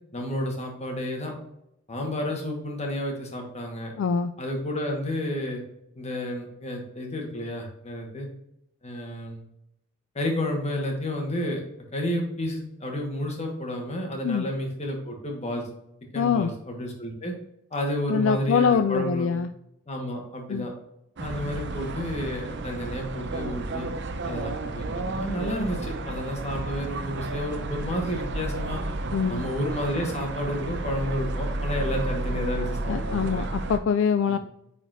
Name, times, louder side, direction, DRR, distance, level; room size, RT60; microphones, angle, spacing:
voice 1, 0.1-1.3 1.9-3.9 4.4-5.6 5.9-8.3 8.8-9.4 10.1-15.7 16.1-17.3 17.7-19.4 19.9-20.7 21.2-23.9 24.2-28.8 29.3-33.4 34.3-34.4, left 1 dB, 35° left, 1 dB, 1.5 m, -31 dB
voice 2, 4.0-4.3 14.2-14.5 16.2-16.5 18.1-19.5 20.5-20.7 29.1-29.4 32.9-34.4, left 6 dB, 65° left, 9 dB, 0.3 m, -24 dB
sound 1, 21.2-33.8, right 2 dB, 60° right, 0.7 m, -32 dB
8.9 x 4.2 x 2.6 m, 0.79 s
head